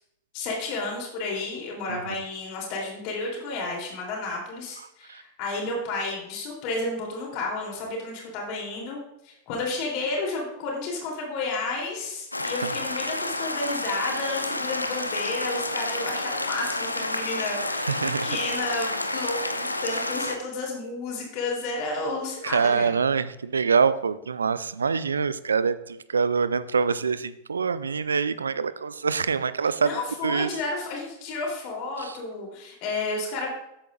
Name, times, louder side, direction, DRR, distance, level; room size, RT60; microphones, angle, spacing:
voice 1, 0.3-9.0 9.2-17.9 18.2-22.9 29.6-33.5, left 3 dB, 45° left, -1 dB, 3.2 m, -32 dB
sound 1, 12.3-20.4, left 2 dB, 85° left, 0.7 m, -29 dB
voice 2, 17.9-18.3 22.4-30.5 32.0-32.1, right 5 dB, 75° right, 15 dB, 0.5 m, -25 dB
13.5 x 8.4 x 2.5 m, 0.82 s
figure-of-eight pair, 90°, 0 cm